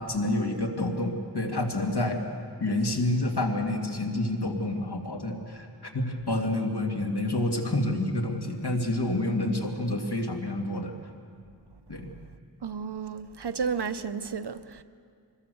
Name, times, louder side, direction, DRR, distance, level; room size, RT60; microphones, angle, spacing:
voice 1, 0.0-2.2 2.6-5.7 5.9-10.9 11.9-12.1, left 1 dB, 70° left, 2.5 m, -28 dB
voice 2, 12.6-14.8, right 6 dB, 80° right, 0.8 m, -32 dB
24.5 x 21.0 x 7.0 m
wide cardioid pair, 50°, 40 cm